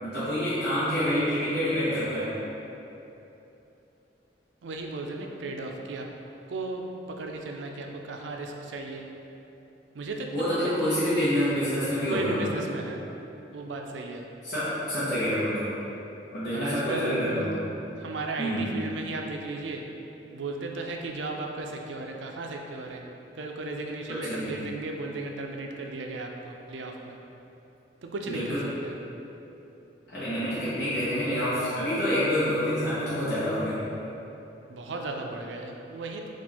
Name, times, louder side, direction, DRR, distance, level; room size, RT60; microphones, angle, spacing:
voice 1, 0.0-2.4 10.3-12.4 14.4-15.7 16.3-17.5 18.4-18.7 24.1-24.6 28.3-28.6 30.1-33.8, equal, 55° left, -12 dB, 1.0 m, -27 dB
voice 2, 4.6-6.1 6.5-9.1 9.9-11.0 12.1-13.0 13.5-14.2 16.5-17.4 18.0-19.9 20.3-23.0 23.3-27.2 28.0-28.9 34.7-36.3, right 2 dB, 85° right, 2 dB, 0.4 m, -35 dB
4.3 x 2.4 x 4.2 m, 3.0 s
head